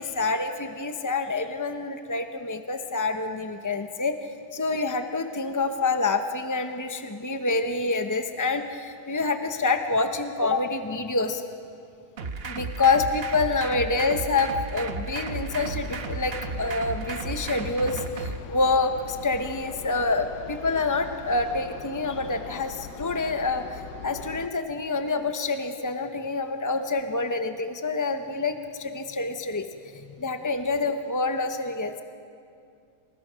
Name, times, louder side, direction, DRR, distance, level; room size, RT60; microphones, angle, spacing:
voice 1, 0.0-4.1 4.5-11.4 12.4-29.7 29.9-32.0, left 3 dB, 25° left, 6 dB, 0.4 m, -27 dB
sound 1, 12.2-18.4, right 4 dB, 40° right, 1.2 m, -34 dB
sound 2, 15.2-24.5, left 7 dB, 80° left, 1.4 m, -42 dB
29.0 x 20.0 x 6.2 m, 2.5 s
omnidirectional pair, 1.7 m